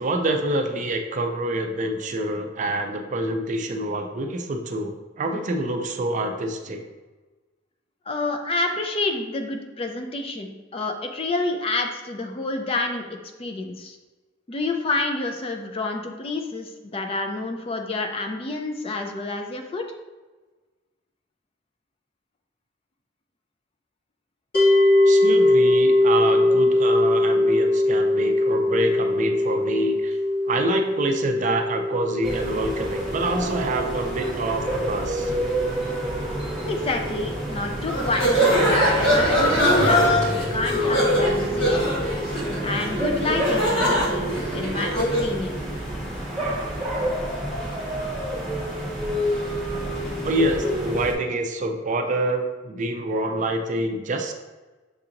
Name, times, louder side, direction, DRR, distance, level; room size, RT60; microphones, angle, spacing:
voice 1, 0.0-6.8 25.1-30.2 30.5-35.3 50.2-54.3, right 1 dB, 40° right, 5 dB, 0.4 m, -26 dB
voice 2, 8.1-13.1 13.4-14.0 14.5-19.8 36.6-41.9 42.6-45.6, left 2 dB, 30° left, 4 dB, 0.4 m, -28 dB
sound 1, 24.5-35.7, left 1 dB, 50° left, 1.2 m, -21 dB
sound 2, 32.2-51.1, equal, ahead, 1.2 m, -28 dB
sound 3, 37.9-45.3, equal, 75° left, 1.2 m, -22 dB
6.5 x 2.8 x 2.5 m, 1.2 s
head